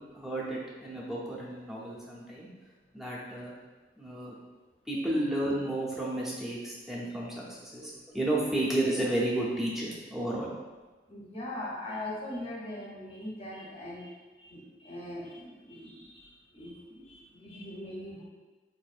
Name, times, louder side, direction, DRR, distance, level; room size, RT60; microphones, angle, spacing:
voice 1, 0.0-2.5 2.9-3.5 4.0-4.4 4.9-10.5, right 1 dB, ahead, -6 dB, 0.6 m, -32 dB
voice 2, 11.1-18.2, left 1 dB, 35° left, -4 dB, 0.7 m, -41 dB
4.2 x 2.5 x 2.4 m, 1.3 s
head